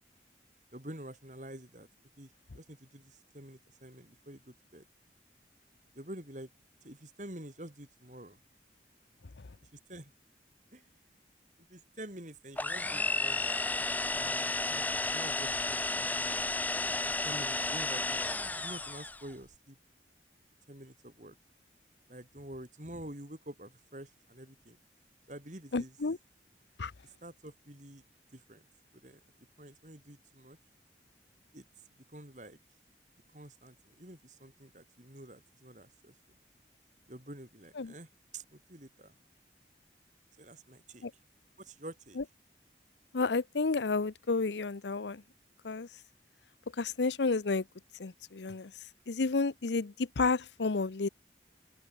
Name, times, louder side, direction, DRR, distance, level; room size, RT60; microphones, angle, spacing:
voice 1, 0.7-1.9 2.2-4.9 5.9-6.5 6.8-8.4 9.7-10.1 10.7-10.9 11.7-13.7 14.1-16.4 17.2-19.8 20.7-21.4 22.1-24.8 25.3-25.9 27.0-28.0 28.3-28.7 29.0-29.2 29.6-30.6 31.5-31.6 32.1-32.6 33.3-36.1 37.1-39.2 40.4-41.1 41.6-42.2, right 1 dB, 45° right, 4.6 m, -48 dB
sound 1, 12.6-19.3, left 2 dB, 10° left, 0.9 m, -32 dB
voice 2, 25.7-26.2 26.8-26.9 37.8-37.9 41.0-41.1 42.2-42.3 43.1-45.2 45.6-45.9 46.8-47.6 48.0-48.7 49.1-51.1, left 4 dB, 80° left, 0.7 m, -31 dB
open air
head